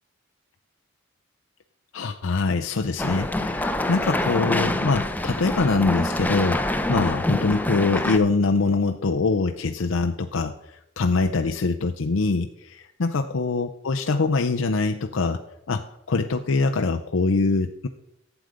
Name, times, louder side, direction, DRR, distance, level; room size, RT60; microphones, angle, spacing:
voice 1, 1.9-6.6 6.9-10.5 11.0-15.4 15.7-17.9, left 3 dB, 80° left, 5 dB, 0.6 m, -23 dB
sound 1, 3.0-8.2, left 1 dB, 10° left, 0.6 m, -26 dB
11.5 x 8.1 x 5.1 m, 0.81 s
head